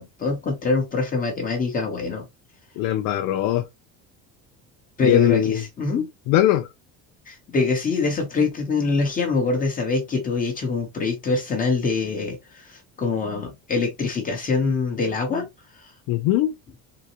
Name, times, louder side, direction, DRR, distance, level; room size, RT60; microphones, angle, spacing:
voice 1, 0.0-2.3 5.0-6.1 7.3-15.5, left 4 dB, 25° left, 1.0 m, -24 dB
voice 2, 2.8-3.6 5.0-5.6 6.3-6.7 16.1-16.5, left 13 dB, 70° left, 0.5 m, -20 dB
3.8 x 2.1 x 2.8 m
cardioid pair, 150°, 34 cm